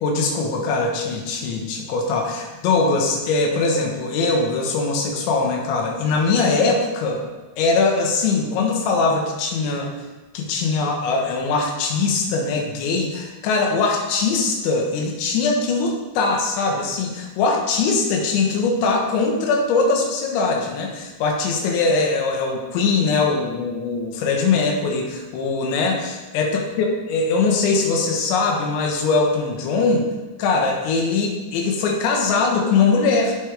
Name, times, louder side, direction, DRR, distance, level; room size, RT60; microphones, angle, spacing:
voice 1, 0.0-7.2 7.6-9.9 10.4-30.1 30.4-33.3, left 4 dB, 75° left, 1 dB, 3.5 m, -21 dB
10.5 x 8.6 x 3.4 m, 1.2 s
omnidirectional pair, 5.5 m